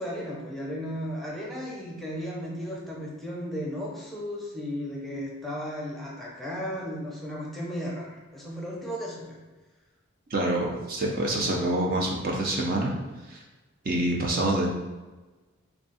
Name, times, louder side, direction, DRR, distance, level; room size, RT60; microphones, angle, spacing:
voice 1, 0.0-9.4, equal, ahead, -4 dB, 0.6 m, -35 dB
voice 2, 10.3-12.9 13.3-13.4 13.8-14.7, right 1 dB, 45° right, -1 dB, 0.5 m, -26 dB
3.4 x 2.3 x 4.0 m, 1.2 s
head